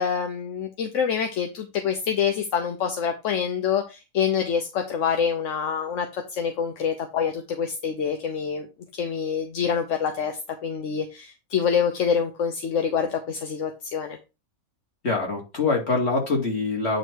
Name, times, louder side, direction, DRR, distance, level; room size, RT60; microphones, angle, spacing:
voice 1, 0.0-8.7 8.9-14.2, left 7 dB, 55° left, 5 dB, 1.0 m, -26 dB
voice 2, 15.0-17.0, left 3 dB, 40° left, 1 dB, 2.5 m, -24 dB
9.1 x 3.2 x 4.5 m, 0.28 s
omnidirectional pair, 1.7 m